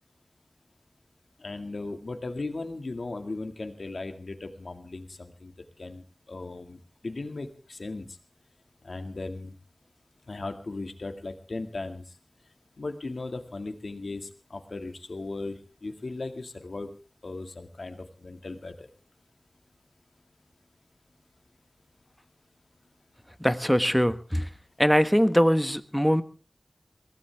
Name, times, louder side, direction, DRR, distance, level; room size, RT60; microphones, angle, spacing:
voice 1, 1.4-5.5 5.8-8.1 8.8-9.5 10.3-12.0 12.8-16.9 17.2-18.7, left 3 dB, 80° left, 6 dB, 2.1 m, -37 dB
voice 2, 23.4-24.5 24.8-26.2, equal, ahead, 12 dB, 1.3 m, -22 dB
23.0 x 17.0 x 3.5 m, 0.36 s
wide cardioid pair, 40°, 0 cm